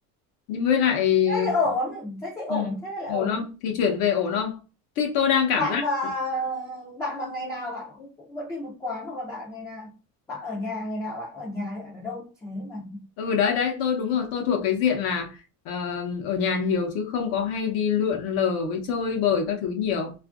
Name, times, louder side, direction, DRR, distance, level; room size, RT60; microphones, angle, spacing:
voice 1, 0.5-1.5 2.5-2.8 3.1-4.6 5.0-5.8 13.2-15.4 15.7-20.1, left 7 dB, 70° left, 0.8 m, -24 dB
voice 2, 1.3-3.5 5.6-10.0 10.3-13.1, left 2 dB, 10° left, 0.4 m, -31 dB
2.5 x 2.5 x 2.4 m
cardioid pair, 150°, 37 cm